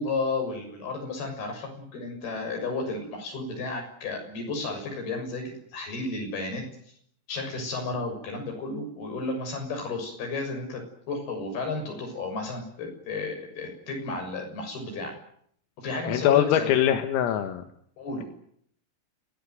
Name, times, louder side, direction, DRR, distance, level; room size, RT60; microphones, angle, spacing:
voice 1, 0.0-5.4 5.7-6.6 7.3-10.8 11.1-15.1 15.8-16.7 18.0-18.2, left 3 dB, 50° left, 3 dB, 8.4 m, -32 dB
voice 2, 16.1-17.6, left 11 dB, 80° left, 6 dB, 4.2 m, -22 dB
27.5 x 17.5 x 9.5 m, 0.67 s
omnidirectional pair, 6.0 m